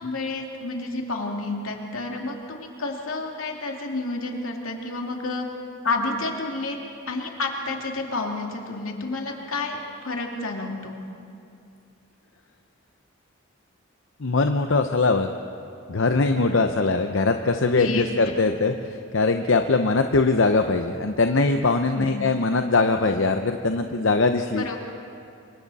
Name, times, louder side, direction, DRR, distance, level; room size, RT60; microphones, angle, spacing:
voice 1, 0.0-5.5 5.8-6.8 7.1-9.8 10.0-11.0 17.7-18.1 21.9-22.1 24.6-24.8, left 3 dB, 85° left, 1 dB, 2.5 m, -30 dB
voice 2, 14.2-15.3 15.9-18.7 19.1-24.8, left 3 dB, 65° left, 6 dB, 0.7 m, -21 dB
27.0 x 23.5 x 4.2 m, 2.5 s
head